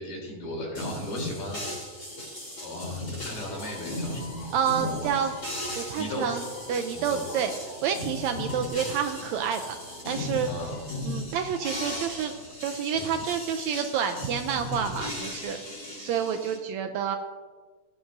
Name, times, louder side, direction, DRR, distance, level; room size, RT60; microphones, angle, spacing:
voice 1, 0.0-1.9 2.6-4.5 4.8-5.3 5.9-6.4 6.9-7.2 10.4-10.8 12.9-13.1 13.6-13.8 15.7-15.8, left 1 dB, 80° left, -2 dB, 4.7 m, -36 dB
sound 1, 0.7-16.6, left 1 dB, 25° left, 3.9 m, -37 dB
Bird, 3.2-12.5, left 1 dB, 50° left, 2.9 m, -47 dB
voice 2, 4.5-5.3 5.7-6.4 6.7-7.5 7.8-9.6 10.0-10.5 11.0-12.3 12.6-15.6 16.0-17.2, right 8 dB, 80° right, 6 dB, 1.7 m, -28 dB
17.0 x 10.5 x 2.6 m, 1.4 s
omnidirectional pair, 3.7 m